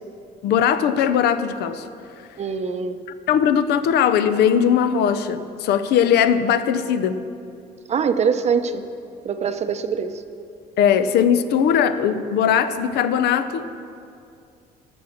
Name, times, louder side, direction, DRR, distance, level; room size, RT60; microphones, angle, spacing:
voice 1, 0.4-1.8 3.3-7.2 10.8-13.8, left 8 dB, 75° left, 12 dB, 0.6 m, -19 dB
voice 2, 2.4-3.0 7.9-8.8 9.2-10.2, right 6 dB, 40° right, 10 dB, 0.7 m, -23 dB
14.0 x 6.2 x 6.4 m, 2.5 s
cardioid pair, 110°, 17 cm